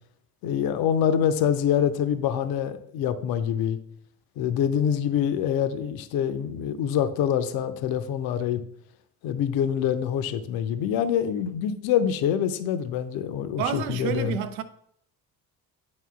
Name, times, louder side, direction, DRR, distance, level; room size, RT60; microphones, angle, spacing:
voice 1, 0.4-3.8 4.4-8.6 9.2-14.4, left 9 dB, 55° left, 0.6 m, -25 dB
voice 2, 13.6-14.6, right 8 dB, 70° right, 0.7 m, -29 dB
9.6 x 4.2 x 2.3 m
figure-of-eight pair, 50°, 45 cm